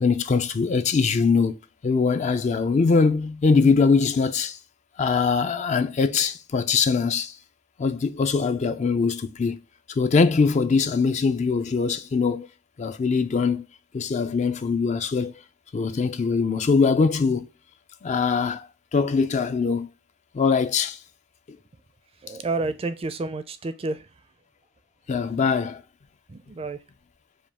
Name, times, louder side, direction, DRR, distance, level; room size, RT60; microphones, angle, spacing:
voice 1, 0.0-1.6 1.8-4.6 5.0-7.3 7.8-9.6 10.0-12.5 12.8-13.7 13.9-15.3 15.7-17.5 18.0-18.7 18.9-19.9 20.3-21.0 25.1-25.8, left 5 dB, 40° left, 0.4 m, -22 dB
voice 2, 22.2-24.0 26.3-26.8, right 3 dB, 30° right, 0.4 m, -30 dB
5.1 x 2.3 x 3.3 m
head